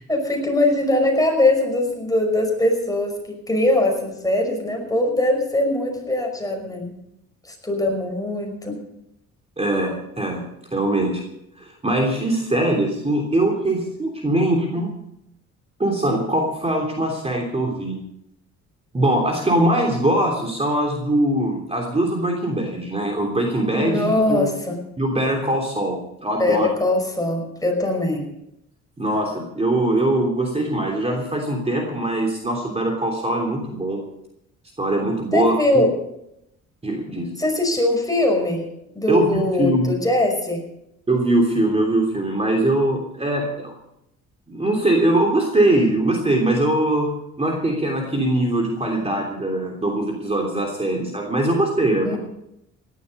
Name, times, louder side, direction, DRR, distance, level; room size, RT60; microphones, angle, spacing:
voice 1, 0.1-6.9 7.4-8.8 23.7-24.8 26.4-28.3 35.3-35.9 37.4-38.6 39.0-40.6 52.0-52.2, left 1 dB, 10° left, 2 dB, 5.6 m, -21 dB
voice 2, 9.6-11.2 11.6-14.9 15.8-18.0 18.9-24.5 25.0-26.7 29.0-34.0 34.8-35.9 36.8-37.3 39.1-39.9 41.1-43.7 44.5-52.2, right 1 dB, 20° right, 0 dB, 3.2 m, -22 dB
17.0 x 12.5 x 5.4 m, 0.79 s
cardioid pair, 90°, 30 cm